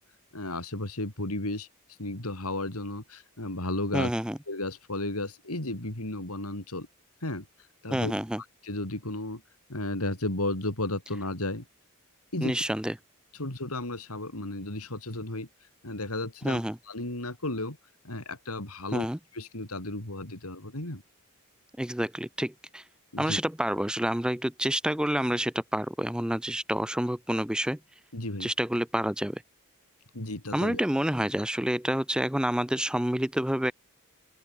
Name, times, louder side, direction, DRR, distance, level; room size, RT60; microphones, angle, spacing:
voice 1, 0.3-1.7 2.0-4.1 4.5-6.9 7.2-7.5 7.8-8.1 8.6-9.4 9.7-11.6 12.3-12.6 13.4-15.5 15.8-16.6 16.9-17.8 18.0-19.1 19.3-21.0 23.1-23.4 28.1-28.5 30.1-30.8, left 2 dB, 75° left, 4.6 m, -33 dB
voice 2, 3.9-4.4 7.9-8.4 12.4-12.9 16.4-16.8 18.9-19.2 21.8-22.8 23.2-27.8 28.4-29.4 30.5-33.7, right 1 dB, 5° right, 0.6 m, -28 dB
open air
head